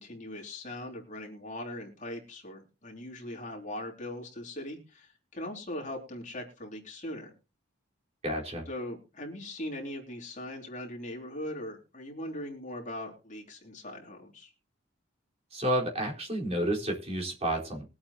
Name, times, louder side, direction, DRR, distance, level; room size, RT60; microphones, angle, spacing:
voice 1, 0.0-7.3 8.7-14.5, left 1 dB, 40° left, 1 dB, 3.6 m, -40 dB
voice 2, 8.2-8.7 15.5-17.8, right 1 dB, 35° right, -1 dB, 4.3 m, -30 dB
22.5 x 8.5 x 2.9 m, 0.31 s
head